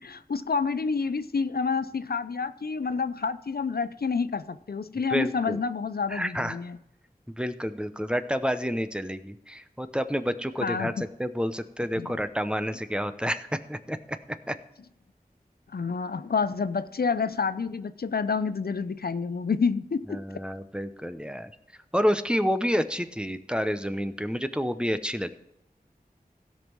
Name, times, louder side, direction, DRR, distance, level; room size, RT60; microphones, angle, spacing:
voice 1, 0.0-6.8 10.6-11.0 12.0-12.1 15.7-20.2, left 5 dB, 80° left, 0.5 m, -28 dB
voice 2, 5.1-5.6 6.1-6.6 7.4-14.2 14.5-14.6 20.1-21.5 21.9-25.3, equal, 5° right, 0.8 m, -29 dB
16.5 x 5.5 x 6.1 m
wide cardioid pair, 45°, 16 cm